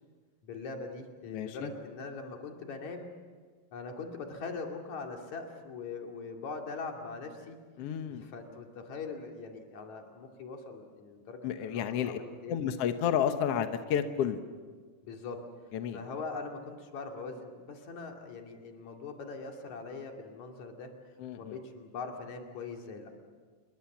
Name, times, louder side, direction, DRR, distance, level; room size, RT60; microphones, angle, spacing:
voice 1, 0.4-3.1 3.7-7.6 8.1-12.6 15.0-15.4 15.9-20.9 21.3-23.1, left 4 dB, 55° left, 2 dB, 3.5 m, -42 dB
voice 2, 1.3-1.7 7.8-8.2 11.4-12.2 12.5-14.4 15.7-16.0 21.2-21.5, left 9 dB, 70° left, 8 dB, 1.4 m, -31 dB
28.0 x 22.5 x 7.3 m, 1.5 s
omnidirectional pair, 4.3 m